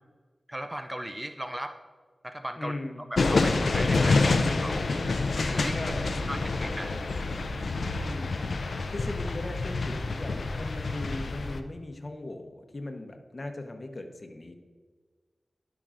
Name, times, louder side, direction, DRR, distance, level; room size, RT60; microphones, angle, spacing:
voice 1, 0.5-1.8 2.2-2.7 3.1-4.9 5.4-5.9 6.3-6.9, right 1 dB, 15° right, 7 dB, 0.5 m, -37 dB
voice 2, 2.6-3.0 5.7-6.1 7.9-8.3 8.9-14.6, left 2 dB, 45° left, 5 dB, 1.0 m, -38 dB
sound 1, 3.2-11.6, left 3 dB, 80° left, 0.5 m, -27 dB
12.0 x 6.1 x 2.6 m, 1.5 s
cardioid pair, 50°, 0 cm